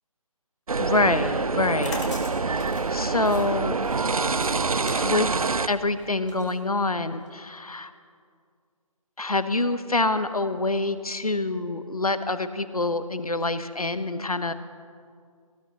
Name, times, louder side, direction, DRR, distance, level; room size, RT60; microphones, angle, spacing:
sound 1, 0.7-5.7, right 4 dB, 75° right, 0.5 m, -26 dB
voice 1, 0.8-2.0 2.5-3.8 5.0-5.3 5.7-7.9 9.2-14.5, left 2 dB, 85° left, 12 dB, 0.8 m, -26 dB
sound 2, 1.5-7.3, left 2 dB, 55° left, 2.6 m, -42 dB
18.5 x 13.5 x 2.9 m, 2.2 s
figure-of-eight pair, 150°, 18 cm